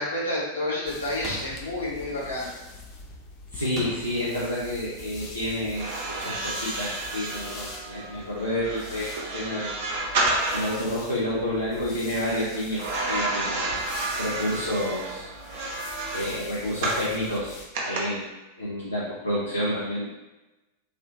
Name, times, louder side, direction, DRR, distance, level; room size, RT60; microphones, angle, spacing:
voice 1, 0.0-2.5, left 1 dB, 70° left, -7 dB, 1.2 m, -29 dB
sound 1, 0.9-17.7, left 3 dB, 35° left, 0.5 m, -44 dB
sound 2, 1.2-1.7 3.8-4.4, right 1 dB, 15° right, 0.8 m, -38 dB
voice 2, 3.5-9.8 10.5-13.8 14.2-15.3 16.1-18.2 18.6-20.1, left 1 dB, 90° left, -9 dB, 0.6 m, -29 dB
sound 3, 5.7-10.9 12.8-17.1 17.7-18.0, right 2 dB, 50° right, 0.7 m, -30 dB
3.3 x 2.5 x 2.9 m, 1.1 s
figure-of-eight pair, 90°, 0 cm